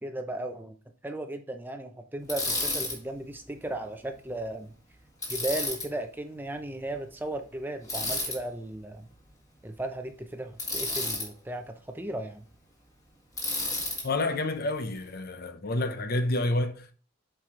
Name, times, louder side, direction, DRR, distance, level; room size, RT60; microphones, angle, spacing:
voice 1, 0.0-0.7 1.0-4.7 5.3-9.1 9.6-12.4, right 1 dB, 10° right, 0.6 m, -36 dB
Bicycle, 2.3-3.0 5.2-5.9 7.9-8.4 10.6-11.3 13.4-14.0, left 2 dB, 15° left, 1.8 m, -31 dB
voice 2, 14.0-16.9, left 2 dB, 45° left, 0.7 m, -29 dB
7.6 x 4.8 x 3.7 m
head